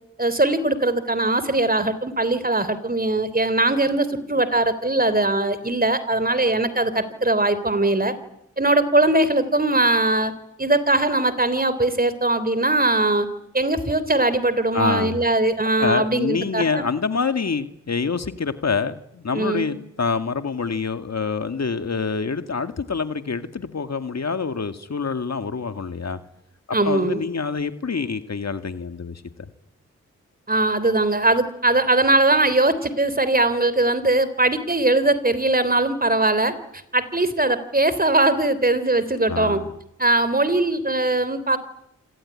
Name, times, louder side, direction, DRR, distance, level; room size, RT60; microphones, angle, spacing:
voice 1, 0.2-8.1 8.6-10.3 10.6-13.3 13.5-16.8 19.3-19.8 26.7-27.2 30.5-36.5 36.9-39.6 40.0-41.6, right 2 dB, 30° right, 3.6 m, -20 dB
voice 2, 14.7-15.2 15.8-26.2 26.8-29.2 39.3-39.7, left 5 dB, 60° left, 2.0 m, -26 dB
27.0 x 21.5 x 9.8 m
cardioid pair, 45°, 30 cm